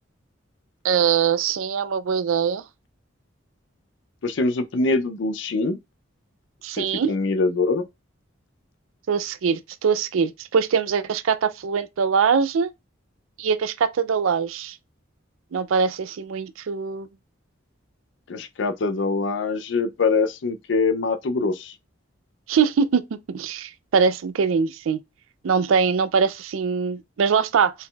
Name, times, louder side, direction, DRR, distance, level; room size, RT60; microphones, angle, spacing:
voice 1, 0.8-2.6 6.6-7.1 9.1-12.7 13.4-14.8 15.5-17.1 22.5-23.0 23.3-25.0 25.4-27.7, right 6 dB, 85° right, 0.4 m, -22 dB
voice 2, 4.2-5.8 6.8-7.8 18.3-21.7, left 3 dB, 65° left, 0.5 m, -24 dB
4.2 x 3.8 x 2.3 m
head